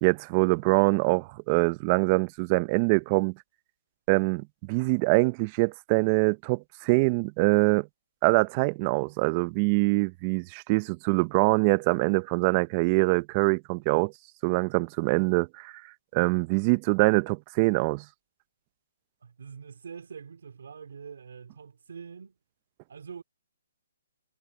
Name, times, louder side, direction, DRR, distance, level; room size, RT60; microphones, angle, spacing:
voice 1, 0.0-3.3 4.1-7.9 8.2-14.1 14.4-15.7 16.1-18.0, right 26 dB, 25° right, 0.5 m, -24 dB
voice 2, 19.2-22.3 22.9-23.2, right 6 dB, 70° right, 2.6 m, -44 dB
hypercardioid pair, 160°, 0 cm